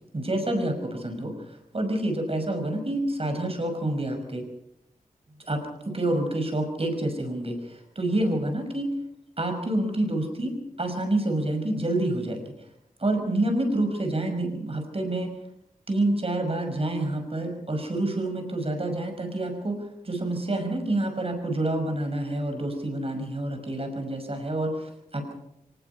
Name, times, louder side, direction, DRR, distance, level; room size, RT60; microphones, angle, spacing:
voice 1, 0.1-4.5 5.5-8.9 9.4-12.4 13.0-15.4 15.9-25.3, right 1 dB, 40° right, 5 dB, 5.7 m, -28 dB
24.5 x 19.0 x 5.6 m, 0.80 s
wide cardioid pair, 85°, 15 cm